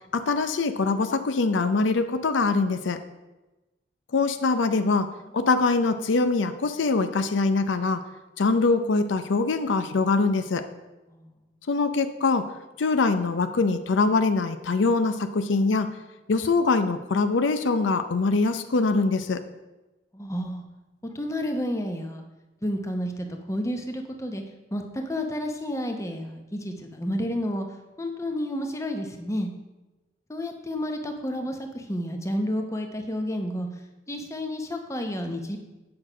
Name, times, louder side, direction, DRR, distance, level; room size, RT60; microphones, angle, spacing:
voice 1, 0.1-3.0 4.1-5.1 5.3-8.0 8.4-10.7 11.7-12.5 12.8-15.9 16.3-19.4, left 3 dB, 85° left, 10 dB, 0.6 m, -23 dB
voice 2, 20.1-20.6 21.0-22.2 22.6-24.4 24.7-27.7 28.0-29.5 30.3-35.6, equal, 15° left, 4 dB, 0.8 m, -31 dB
8.6 x 6.0 x 5.0 m, 1.1 s
head